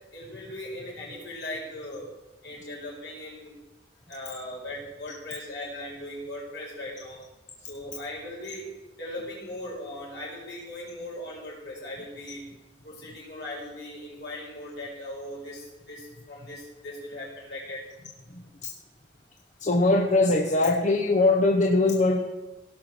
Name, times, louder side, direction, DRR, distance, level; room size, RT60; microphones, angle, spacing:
voice 1, 0.1-2.1 2.4-3.6 4.1-7.2 7.7-8.7 8.9-12.4 12.8-17.8, left 1 dB, 70° left, -4 dB, 5.2 m, -39 dB
voice 2, 18.3-18.7 19.6-22.3, left 2 dB, 45° left, 2 dB, 0.9 m, -22 dB
17.0 x 5.8 x 6.2 m, 1.1 s
head